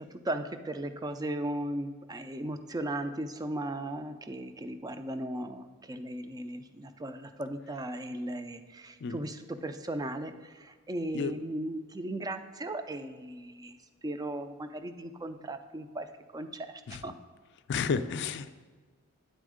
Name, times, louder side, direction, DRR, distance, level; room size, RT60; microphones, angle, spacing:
voice 1, 0.0-13.8 14.0-16.1 16.3-17.1, right 1 dB, 15° right, 9 dB, 0.4 m, -37 dB
voice 2, 17.7-18.5, left 5 dB, 50° left, 11 dB, 0.4 m, -31 dB
9.2 x 4.3 x 4.9 m, 1.4 s
head